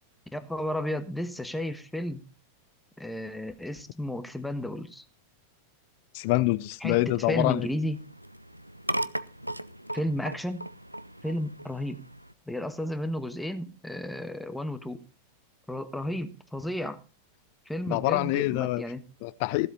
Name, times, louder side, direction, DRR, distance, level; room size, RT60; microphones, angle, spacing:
voice 1, 0.3-2.2 3.0-5.0 6.8-8.0 9.9-10.6 11.2-12.0 12.5-15.0 15.7-17.0 17.6-19.1, left 1 dB, 5° left, 1.4 m, -33 dB
voice 2, 6.1-7.7 17.9-18.8 19.2-19.7, left 19 dB, 45° left, 0.5 m, -26 dB
sound 1, 6.9-12.3, right 1 dB, 90° right, 0.5 m, -38 dB
15.5 x 7.9 x 5.4 m
figure-of-eight pair, 90°, 0 cm